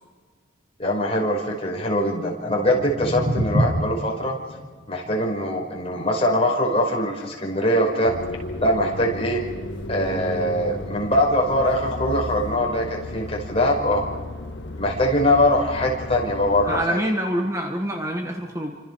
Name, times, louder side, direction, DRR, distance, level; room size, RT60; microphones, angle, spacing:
voice 1, 0.8-4.4 4.9-8.1 8.6-9.4 9.9-14.0 14.8-17.0, left 1 dB, 30° left, -1 dB, 5.3 m, -22 dB
sound 1, 2.4-8.5, equal, 45° right, 7.6 m, -29 dB
sound 2, 8.0-16.8, left 1 dB, 70° left, 2.0 m, -34 dB
voice 2, 16.7-18.8, equal, 15° right, 2 dB, 1.8 m, -26 dB
29.5 x 26.0 x 4.8 m, 1.5 s
head